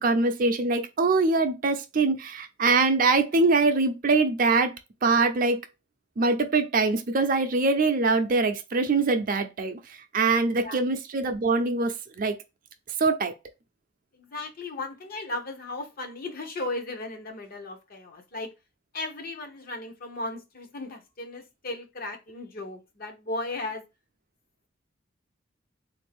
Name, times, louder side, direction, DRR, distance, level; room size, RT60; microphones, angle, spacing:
voice 1, 0.0-4.7 5.0-5.6 6.2-9.8 10.1-12.4 13.0-13.3, right 3 dB, 45° right, 0.5 m, -23 dB
voice 2, 10.3-10.8 14.1-18.5 18.9-23.8, left 2 dB, 45° left, 0.7 m, -36 dB
3.8 x 2.6 x 3.3 m
head